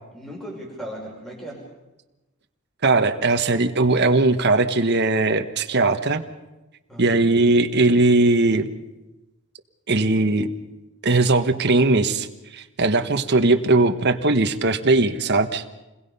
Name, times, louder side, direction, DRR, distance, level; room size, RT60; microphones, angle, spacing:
voice 1, 0.1-1.6 6.9-7.2, right 1 dB, ahead, -2 dB, 4.8 m, -37 dB
voice 2, 2.8-6.2 7.0-8.7 9.9-10.5 11.0-12.3 12.5-15.7, right 2 dB, 50° right, 6 dB, 1.2 m, -19 dB
28.0 x 21.0 x 5.5 m, 1.1 s
head